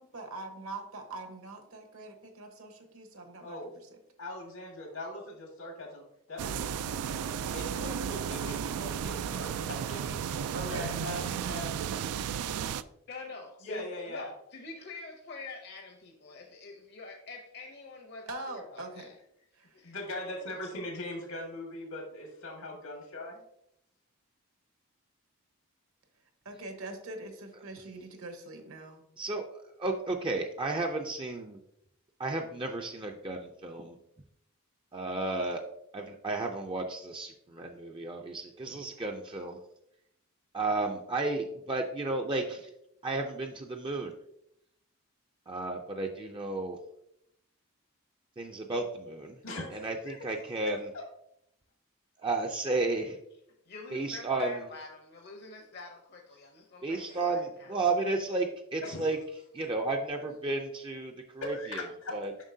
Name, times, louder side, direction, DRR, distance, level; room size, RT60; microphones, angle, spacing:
voice 1, 0.0-3.9 10.5-10.9 18.3-19.1 19.5-19.7 26.4-29.0, right 2 dB, 70° right, 5 dB, 1.1 m, -43 dB
voice 2, 4.2-6.6 7.1-11.7 13.6-14.3 19.8-23.4 49.4-50.4 50.9-51.0 57.1-57.2 58.8-59.1 61.4-62.1, left 1 dB, 85° left, -1 dB, 1.7 m, -41 dB
sound 1, 6.4-12.8, right 8 dB, 90° right, 0.3 m, -34 dB
voice 3, 13.1-19.1 19.7-20.5 53.7-57.9, left 3 dB, 50° left, 2 dB, 0.7 m, -46 dB
voice 4, 29.8-31.6 32.2-34.0 34.9-35.6 35.9-39.6 40.5-42.7 43.0-44.1 45.5-46.8 48.4-49.4 49.7-50.9 52.2-53.2 53.9-54.6 56.8-59.2 59.5-61.9 62.1-62.3, right 3 dB, 20° right, 2 dB, 0.4 m, -33 dB
7.3 x 5.6 x 2.7 m, 0.76 s
head